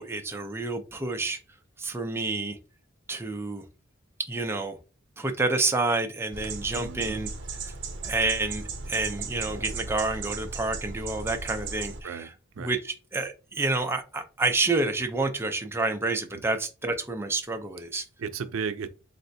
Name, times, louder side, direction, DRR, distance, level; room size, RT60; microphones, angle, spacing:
voice 1, 0.0-1.4 1.8-2.6 3.1-3.6 4.3-4.8 5.2-7.3 7.6-7.7 8.0-12.3 12.6-18.0, right 3 dB, 10° right, 0.5 m, -29 dB
sound 1, 6.3-12.0, right 4 dB, 60° right, 0.8 m, -36 dB
voice 2, 6.7-7.2 12.0-12.3 12.6-12.7 16.3-16.4 18.2-18.9, right 6 dB, 90° right, 0.4 m, -34 dB
4.1 x 3.3 x 2.6 m
head